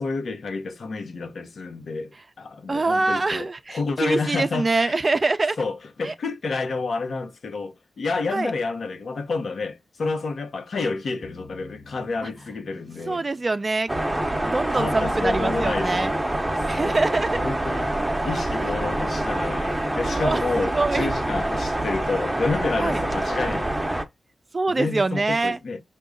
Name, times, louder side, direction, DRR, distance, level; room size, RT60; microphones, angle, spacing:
voice 1, 0.0-5.0 5.6-13.2 14.7-16.2 16.8-17.0 17.4-17.9 18.2-23.7 24.8-25.8, left 3 dB, 70° left, 0.8 m, -29 dB
voice 2, 2.7-5.6 6.0-6.1 8.3-8.5 13.1-13.9 14.4-16.1 16.7-17.4 19.7-21.1 22.8-23.0 24.5-25.6, right 3 dB, 40° right, 0.4 m, -24 dB
sound 1, 11.2-13.6, left 3 dB, 15° left, 0.7 m, -48 dB
sound 2, 13.9-24.0, right 1 dB, 15° right, 0.8 m, -26 dB
5.1 x 2.3 x 3.6 m
cardioid pair, 50°, 0 cm